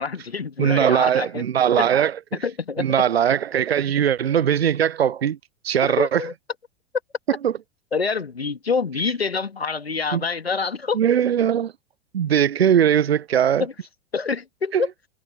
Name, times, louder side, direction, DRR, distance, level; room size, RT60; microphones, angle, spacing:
voice 1, 0.0-1.4 1.8-1.9 2.4-2.9 5.8-6.3 7.9-11.0 13.6-13.7 14.1-14.9, left 5 dB, 80° left, 1.7 m, -26 dB
voice 2, 0.6-2.2 2.8-5.4 5.6-6.2 7.4-7.5 10.1-10.2 10.9-11.7 12.1-13.7 14.7-14.8, right 9 dB, 80° right, 0.5 m, -20 dB
figure-of-eight pair, 90°, 30 cm